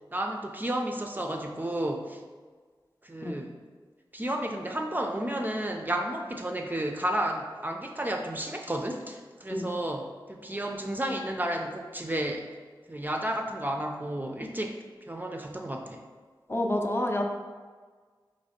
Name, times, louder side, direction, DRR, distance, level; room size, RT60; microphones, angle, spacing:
voice 1, 0.1-2.2 3.0-3.6 4.1-12.5 12.9-14.8 15.1-16.0, right 1 dB, 20° right, 2 dB, 0.4 m, -32 dB
voice 2, 16.5-17.2, left 1 dB, 30° left, 1 dB, 0.5 m, -28 dB
4.0 x 3.0 x 4.2 m, 1.5 s
wide cardioid pair, 60°, 8 cm